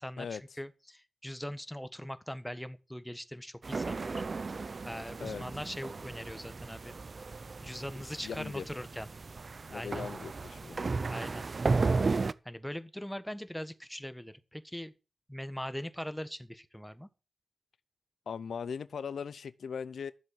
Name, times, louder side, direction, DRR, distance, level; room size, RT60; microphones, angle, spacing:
voice 1, 0.0-4.2 4.8-6.9 7.6-9.1 9.7-10.1 11.1-12.0 12.4-14.9 15.3-17.1, equal, 5° left, 1.4 m, -41 dB
sound 1, 3.6-12.3, right 4 dB, 45° right, 0.6 m, -34 dB
voice 2, 8.0-8.7 9.7-10.9 18.3-20.1, left 6 dB, 85° left, 0.6 m, -39 dB
13.5 x 7.7 x 7.5 m
wide cardioid pair, 85°, 0 cm